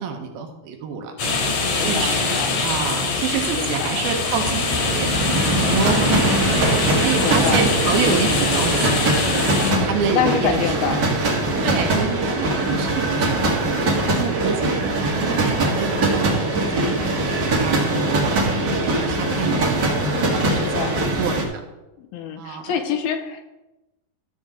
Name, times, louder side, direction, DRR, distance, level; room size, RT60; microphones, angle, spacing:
voice 1, 0.0-1.5 1.8-9.4 9.8-11.0 11.6-13.6 14.1-18.0 18.3-19.9 20.3-21.6 22.4-22.7, right 6 dB, 75° right, 3 dB, 2.8 m, -28 dB
sound 1, 1.2-9.7, left 4 dB, 55° left, 2.4 m, -23 dB
voice 2, 1.6-2.5 3.5-3.9 5.7-6.2 7.2-7.6 9.6-11.1 18.5-18.9 20.5-21.0 22.0-23.4, left 7 dB, 80° left, 6 dB, 2.6 m, -27 dB
sound 2, 4.0-21.4, right 2 dB, 45° right, 1.4 m, -22 dB
14.0 x 7.2 x 3.7 m, 1.0 s
omnidirectional pair, 4.7 m